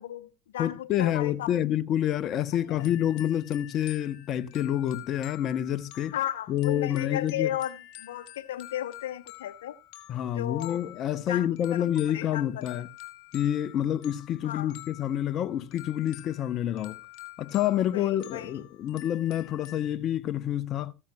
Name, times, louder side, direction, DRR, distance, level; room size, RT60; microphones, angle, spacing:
voice 1, 0.0-1.8 2.7-2.8 6.1-9.8 10.3-10.8 11.1-12.7 14.4-14.7 17.9-18.6, left 12 dB, 85° left, 0.7 m, -35 dB
voice 2, 0.6-6.1 6.5-7.5 10.1-12.9 13.3-17.0 17.4-20.9, left 11 dB, 50° left, 0.7 m, -28 dB
sound 1, 2.8-19.9, left 17 dB, 65° left, 2.0 m, -48 dB
15.5 x 14.5 x 2.2 m
hypercardioid pair, 90°, 0 cm